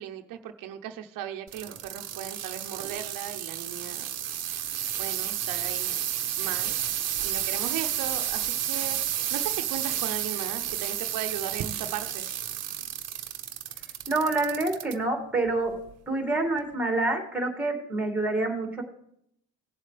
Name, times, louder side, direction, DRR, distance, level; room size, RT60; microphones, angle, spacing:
voice 1, 0.0-4.1 5.0-6.0 6.4-9.0 9.3-12.3, right 10 dB, 85° right, 6 dB, 0.9 m, -37 dB
sound 1, 1.5-14.9 15.5-15.9 16.6-16.7, right 10 dB, 55° right, 1.0 m, -31 dB
voice 2, 14.1-15.8 16.1-18.8, right 2 dB, 5° right, 3 dB, 2.3 m, -27 dB
18.5 x 7.6 x 3.3 m, 0.71 s
cardioid pair, 125°, 32 cm